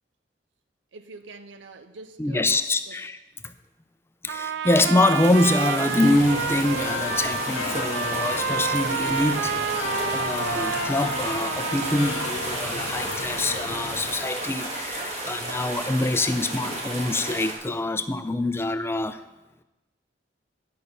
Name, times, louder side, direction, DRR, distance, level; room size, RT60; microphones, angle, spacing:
voice 1, 0.9-3.0, right 3 dB, 90° right, 0.7 m, -45 dB
voice 2, 2.2-3.2 3.4-3.5 4.2-9.8 10.1-19.2, left 2 dB, 15° left, 0.4 m, -25 dB
Trumpet, 4.3-12.4, right 8 dB, 65° right, 0.3 m, -30 dB
sound 1, 5.2-17.5, right 1 dB, 35° right, 1.7 m, -33 dB
sound 2, 6.0-14.2, left 5 dB, 85° left, 0.7 m, -34 dB
10.0 x 5.4 x 6.7 m
head